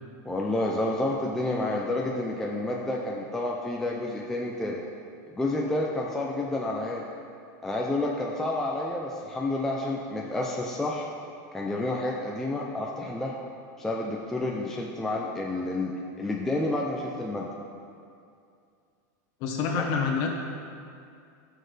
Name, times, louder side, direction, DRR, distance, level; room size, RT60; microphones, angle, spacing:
voice 1, 0.2-4.8 5.3-7.0 7.6-11.0 11.5-13.3 13.8-17.5 19.8-19.9, left 2 dB, 5° left, -3 dB, 0.5 m, -29 dB
voice 2, 19.4-20.3, left 5 dB, 40° left, 1 dB, 1.2 m, -27 dB
13.0 x 6.5 x 3.3 m, 2.4 s
supercardioid pair, 165°, 10 cm